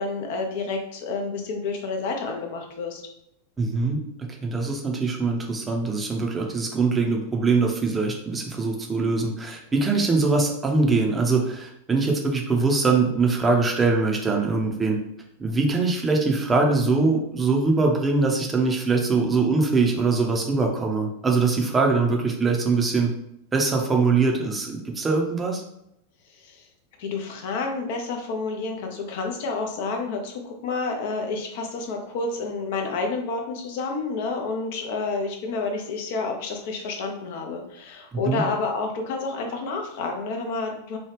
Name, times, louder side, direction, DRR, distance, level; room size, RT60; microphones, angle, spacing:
voice 1, 0.0-3.0 26.3-26.7 27.0-41.0, left 3 dB, 50° left, 3 dB, 0.6 m, -29 dB
voice 2, 3.6-15.0 15.4-23.1 23.5-25.6 38.1-38.4, right 3 dB, 15° right, 1 dB, 0.6 m, -22 dB
3.0 x 2.3 x 3.3 m, 0.78 s
figure-of-eight pair, 90°, 0 cm